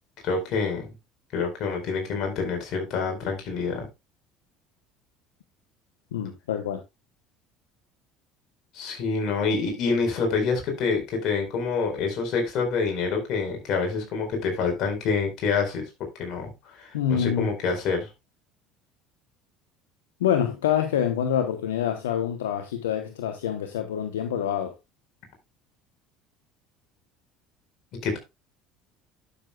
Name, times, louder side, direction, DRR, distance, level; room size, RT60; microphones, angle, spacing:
voice 1, 0.2-0.9 1.3-3.9 8.7-18.1 28.0-28.2, left 4 dB, 60° left, 4.6 m, -27 dB
voice 2, 6.1-6.8 16.9-17.5 20.2-24.7, left 9 dB, 90° left, 0.9 m, -26 dB
11.5 x 6.9 x 2.3 m
hypercardioid pair, 75°, 0 cm